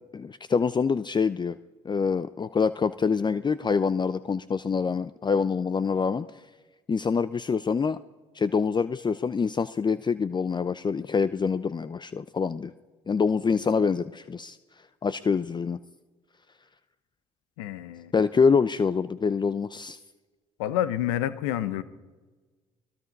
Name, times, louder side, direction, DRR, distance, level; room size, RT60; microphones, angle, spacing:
voice 1, 0.1-1.6 1.8-6.4 6.9-8.0 8.3-12.7 13.1-14.6 15.0-15.8 18.1-20.0, left 5 dB, 30° left, 15 dB, 0.6 m, -25 dB
voice 2, 17.6-18.1 20.6-21.8, left 12 dB, 85° left, 15 dB, 0.9 m, -28 dB
25.0 x 19.5 x 5.4 m, 1.3 s
hypercardioid pair, 55°, 15 cm